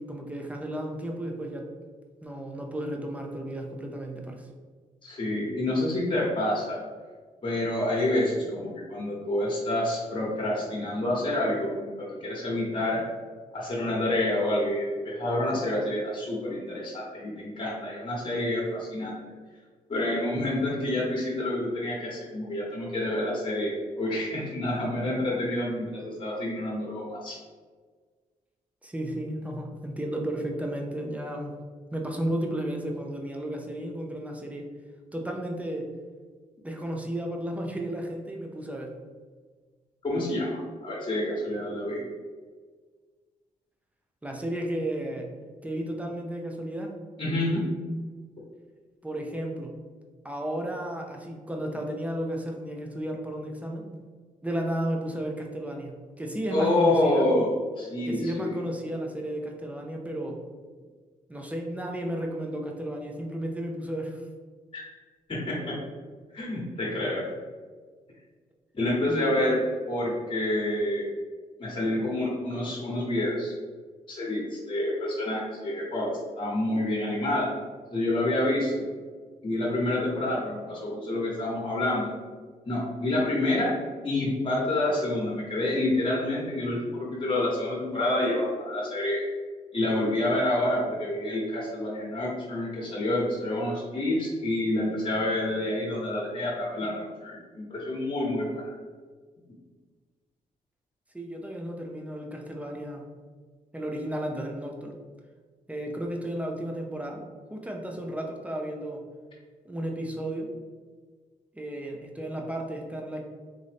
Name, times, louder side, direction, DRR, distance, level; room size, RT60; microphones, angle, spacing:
voice 1, 0.0-1.7 2.2-4.5 28.8-31.5 31.9-34.7 35.1-35.9 36.6-38.9 44.2-45.3 45.6-47.0 49.0-49.7 50.2-53.9 54.4-57.2 58.1-60.4 61.3-64.2 69.0-69.4 101.1-103.1 103.7-105.0 105.7-109.0 109.6-110.5 111.5-113.2, right 1 dB, 10° right, 1 dB, 0.7 m, -33 dB
voice 2, 5.0-6.8 7.4-13.0 13.5-19.2 19.9-27.4 40.0-42.0 47.2-47.7 56.5-58.6 64.7-64.8 65.3-65.8 66.3-67.2 68.7-69.6 69.9-71.1 71.6-73.5 74.1-77.5 77.9-78.9 79.4-82.1 82.6-83.7 84.0-89.2 89.7-98.7, left 1 dB, 35° left, -4 dB, 1.3 m, -28 dB
3.7 x 2.6 x 3.4 m, 1.5 s
cardioid pair, 70°, 15 cm